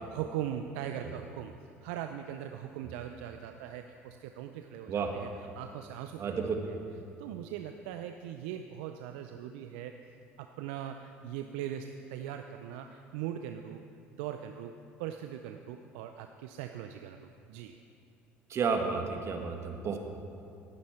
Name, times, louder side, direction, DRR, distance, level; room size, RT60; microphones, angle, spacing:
voice 1, 0.1-1.5 1.8-5.3 5.5-6.4 6.7-6.8 7.2-9.9 10.4-13.8 14.1-14.7 15.0-17.8, right 10 dB, 70° right, 7 dB, 0.5 m, -40 dB
voice 2, 6.2-6.6 18.5-20.0, right 5 dB, 45° right, 4 dB, 1.7 m, -31 dB
17.5 x 9.5 x 4.5 m, 2.8 s
hypercardioid pair, 65°, 6 cm